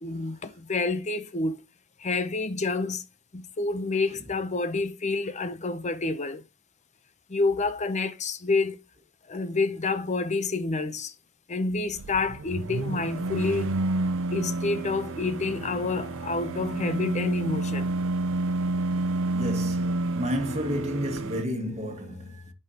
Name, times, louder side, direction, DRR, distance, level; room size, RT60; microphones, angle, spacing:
voice 1, 0.0-1.6 2.0-3.0 3.3-6.4 7.3-8.8 9.3-11.1 11.5-13.8 14.3-17.9, left 3 dB, 35° left, 0.7 m, -28 dB
sound 1, 11.9-21.4, right 2 dB, 65° right, 0.6 m, -29 dB
voice 2, 19.3-22.5, equal, 30° right, 2.2 m, -31 dB
11.0 x 5.6 x 2.9 m
head